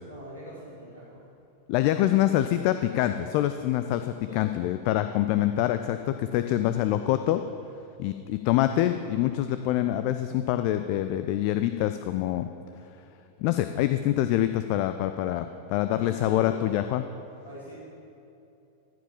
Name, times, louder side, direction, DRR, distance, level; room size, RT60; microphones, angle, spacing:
voice 1, 0.1-1.3 4.3-4.7 15.9-16.9 17.4-17.7, equal, 70° left, -7 dB, 2.2 m, -42 dB
voice 2, 1.7-7.4 8.0-12.5 13.4-17.0, left 13 dB, 45° left, 10 dB, 0.4 m, -25 dB
14.0 x 5.1 x 7.2 m, 2.8 s
figure-of-eight pair, 90°, 0 cm